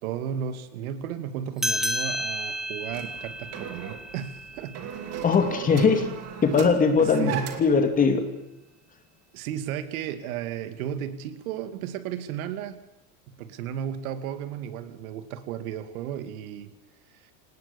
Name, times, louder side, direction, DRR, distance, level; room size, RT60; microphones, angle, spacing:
voice 1, 0.0-4.9 7.0-7.5 9.3-12.8 13.4-16.7, right 9 dB, 85° right, 10 dB, 2.6 m, -34 dB
sound 1, 1.6-6.5, equal, ahead, 1.9 m, -33 dB
sound 2, 2.9-7.8, right 8 dB, 35° right, 2.8 m, -36 dB
voice 2, 5.2-6.1 6.4-7.3 7.6-8.2, left 5 dB, 20° left, 7 dB, 2.4 m, -20 dB
27.0 x 19.0 x 7.2 m, 0.89 s
cardioid pair, 170°, 41 cm